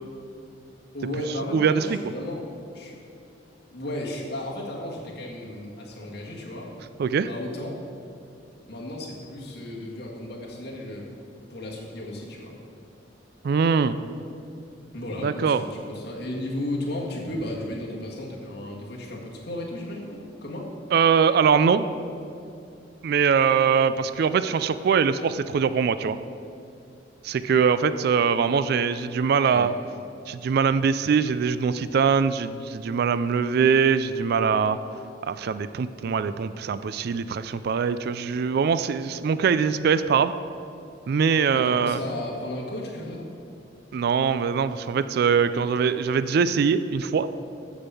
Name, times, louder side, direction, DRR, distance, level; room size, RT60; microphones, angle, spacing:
voice 1, 0.9-2.4 2.7-3.0 3.7-6.7 7.3-7.7 8.7-11.1 11.5-12.6 14.9-20.7 29.3-29.7 41.5-43.3, left 1 dB, 60° left, -2 dB, 1.7 m, -34 dB
voice 2, 1.5-2.0 7.0-7.3 13.4-14.0 15.2-15.6 20.9-21.9 23.0-26.2 27.2-29.7 30.3-34.8 35.2-40.3 41.1-42.0 43.9-47.3, right 6 dB, 55° right, 13 dB, 0.3 m, -22 dB
7.3 x 6.8 x 6.8 m, 2.5 s
head